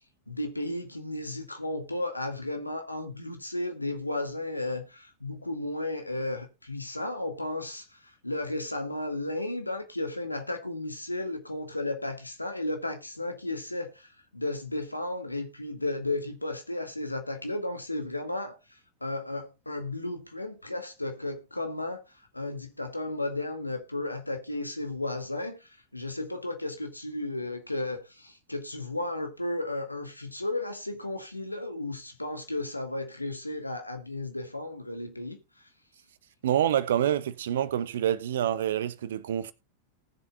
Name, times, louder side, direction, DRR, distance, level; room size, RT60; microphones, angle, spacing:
voice 1, 0.3-22.0 22.3-35.4, left 2 dB, 85° left, 2.0 m, -34 dB
voice 2, 36.4-39.5, right 10 dB, 60° right, 0.9 m, -27 dB
19.0 x 7.2 x 2.4 m
figure-of-eight pair, 90°, 0 cm